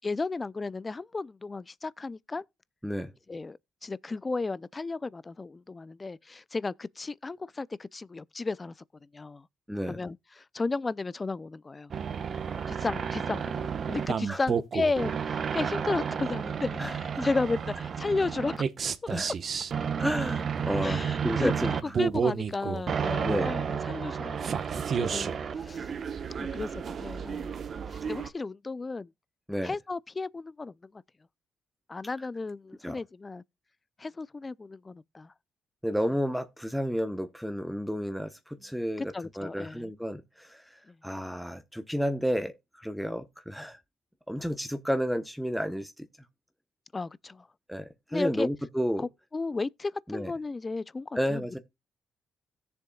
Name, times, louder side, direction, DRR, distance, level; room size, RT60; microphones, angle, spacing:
voice 1, 0.0-2.4 3.3-8.7 9.1-9.5 9.9-11.9 12.7-18.6 20.8-21.5 22.0-24.6 24.9-25.3 25.6-25.9 26.4-27.5 27.9-29.1 29.6-31.0 31.9-33.4 34.0-35.3 39.1-39.9 40.9-41.0 46.9-47.5 48.1-48.5 49.0-51.6, left 3 dB, 25° left, 0.4 m, -34 dB
voice 2, 9.7-10.0 14.3-14.4 16.8-17.3 19.1-19.3 20.0-22.0 23.2-23.5 29.5-29.7 32.8-33.0 35.8-43.8 44.3-46.1 47.7-49.1 50.1-50.3 51.1-51.6, equal, ahead, 1.0 m, -31 dB
sound 1, 11.9-28.3, right 7 dB, 50° right, 1.1 m, -31 dB
16.5 x 7.0 x 2.3 m
cardioid pair, 90°, 0 cm